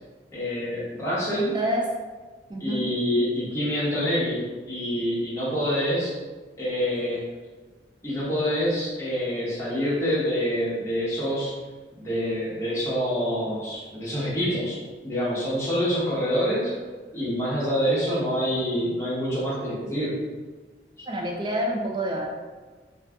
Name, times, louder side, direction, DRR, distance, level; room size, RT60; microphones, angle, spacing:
voice 1, 0.3-1.6 2.6-6.2 6.6-7.2 8.0-11.6 11.9-14.8 15.0-16.8 17.1-20.2, equal, 15° left, -8 dB, 0.9 m, -26 dB
voice 2, 1.5-1.8 2.5-2.9 21.1-22.3, equal, 25° right, 0 dB, 0.4 m, -27 dB
2.6 x 2.4 x 3.4 m, 1.4 s
head